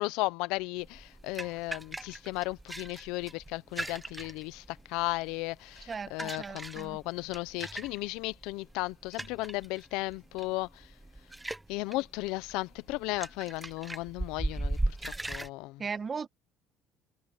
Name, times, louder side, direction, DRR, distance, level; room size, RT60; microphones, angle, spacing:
voice 1, 0.0-10.9 11.7-15.8, left 21 dB, 80° left, 0.7 m, -35 dB
sound 1, 0.8-15.5, right 1 dB, 10° right, 0.9 m, -39 dB
voice 2, 5.9-7.0 15.8-16.3, right 5 dB, 30° right, 2.0 m, -37 dB
supercardioid pair, 100°, 0 cm